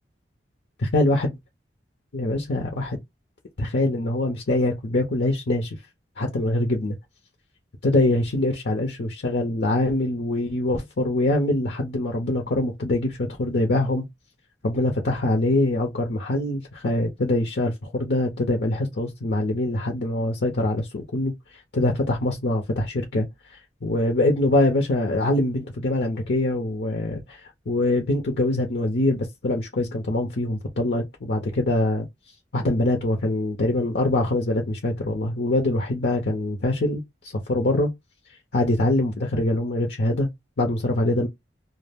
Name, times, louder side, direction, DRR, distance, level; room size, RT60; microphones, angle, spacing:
voice 1, 0.9-1.3 2.1-3.0 3.6-5.8 6.2-7.0 7.8-14.1 14.6-21.3 21.7-23.3 23.8-27.4 27.7-32.1 32.5-37.9 38.5-40.3 40.6-41.3, left 1 dB, 70° left, 0.6 m, -24 dB
2.3 x 2.0 x 3.4 m
head